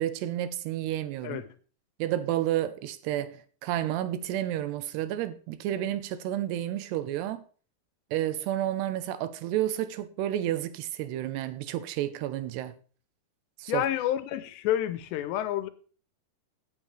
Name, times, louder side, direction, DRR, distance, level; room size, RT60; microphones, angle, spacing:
voice 1, 0.0-1.4 2.0-7.4 8.1-12.7 13.6-13.8, right 12 dB, 90° right, 2.9 m, -31 dB
voice 2, 1.2-1.5 13.7-15.7, left 12 dB, 90° left, 3.1 m, -29 dB
16.5 x 9.0 x 3.3 m
omnidirectional pair, 4.8 m